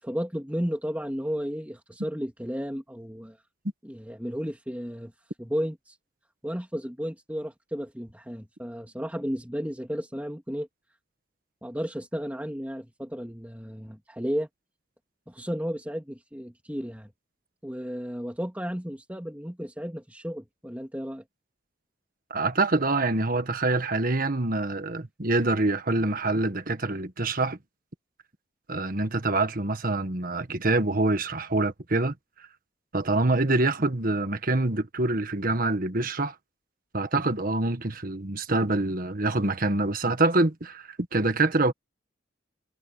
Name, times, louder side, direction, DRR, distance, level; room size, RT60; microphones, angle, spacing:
voice 1, 0.0-3.4 3.8-5.1 5.4-6.0 6.4-10.7 11.6-14.5 15.3-17.1 17.6-21.2, equal, 10° right, 2.8 m, -33 dB
voice 2, 22.3-27.6 28.7-32.1 32.9-36.3 36.9-41.7, right 2 dB, 45° right, 1.6 m, -25 dB
head